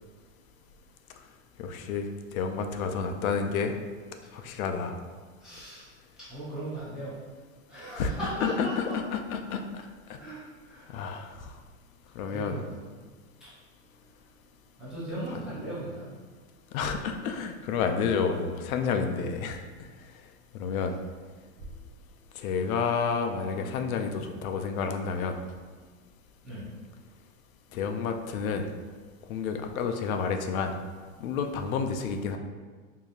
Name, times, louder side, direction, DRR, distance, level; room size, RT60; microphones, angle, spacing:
voice 1, 1.6-2.1 2.3-3.7 4.3-5.0 8.0-8.1 8.4-10.2 10.9-11.3 12.2-12.6 16.7-19.6 20.5-21.0 22.4-25.4 27.7-28.7 29.3-30.7 31.2-32.4, left 5 dB, 85° left, 6 dB, 0.5 m, -30 dB
voice 2, 5.4-5.9 6.3-7.2 7.7-9.0 9.7-9.8 10.2-10.9 12.3-12.9 13.4-13.5 14.8-16.1 26.4-26.6, right 1 dB, ahead, -13 dB, 0.3 m, -38 dB
4.9 x 2.7 x 2.4 m, 1.5 s
supercardioid pair, 160°, 41 cm